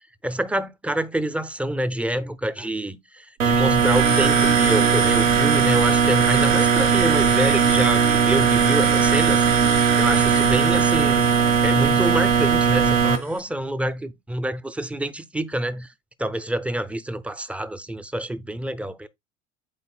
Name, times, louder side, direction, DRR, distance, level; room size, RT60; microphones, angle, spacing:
voice 1, 0.2-9.5 10.0-11.3 11.6-15.9 16.2-19.1, right 1 dB, 5° right, 0.4 m, -27 dB
sound 1, 3.4-13.2, right 6 dB, 85° right, 1.4 m, -18 dB
11.5 x 4.1 x 2.3 m
hypercardioid pair, 85°, 37 cm